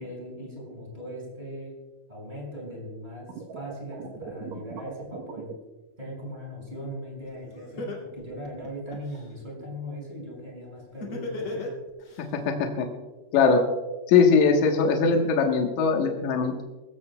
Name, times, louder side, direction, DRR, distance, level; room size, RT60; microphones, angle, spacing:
voice 1, 0.0-1.7 2.1-5.5 6.0-11.7, equal, 10° right, -3 dB, 5.1 m, -39 dB
sound 1, 3.3-5.5, right 6 dB, 85° right, 1.6 m, -39 dB
Laughter, 7.3-7.4 7.8-9.2 11.0-12.2, left 2 dB, 40° left, 2.4 m, -34 dB
voice 2, 12.2-12.9 13.3-13.6 14.1-16.6, left 5 dB, 65° left, 2 dB, 2.0 m, -21 dB
21.5 x 15.0 x 2.2 m, 1.2 s
omnidirectional pair, 4.8 m